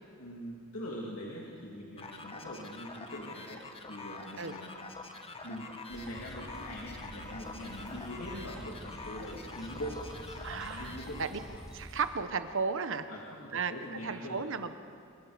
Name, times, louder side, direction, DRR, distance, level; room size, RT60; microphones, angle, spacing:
voice 1, 0.2-3.6 3.9-4.7 5.4-10.0 10.8-11.2 13.1-14.5, equal, 75° left, -4 dB, 2.8 m, -43 dB
sound 1, 2.0-11.7, left 3 dB, 30° left, 1.4 m, -46 dB
sound 2, 5.9-12.0, equal, 5° right, 4.8 m, -48 dB
voice 2, 10.4-11.4 11.7-13.1 13.5-13.7 14.0-14.7, right 5 dB, 65° right, 10 dB, 1.1 m, -34 dB
26.0 x 22.5 x 5.1 m, 2.3 s
head